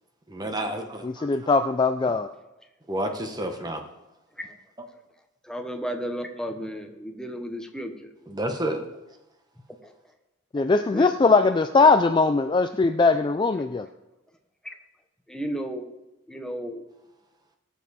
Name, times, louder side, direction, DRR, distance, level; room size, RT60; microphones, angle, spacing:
voice 1, 0.3-1.3 2.9-3.8 8.3-8.8, right 1 dB, 20° right, 5 dB, 1.0 m, -30 dB
voice 2, 1.0-2.3 10.5-13.9, left 4 dB, 25° left, 8 dB, 0.3 m, -20 dB
voice 3, 5.4-8.1 9.8-9.9 10.8-11.6 11.8-12.0 14.6-14.7 15.3-15.9 16.3-16.8, equal, 5° left, 4 dB, 1.0 m, -34 dB
18.0 x 7.4 x 4.2 m, 0.98 s
head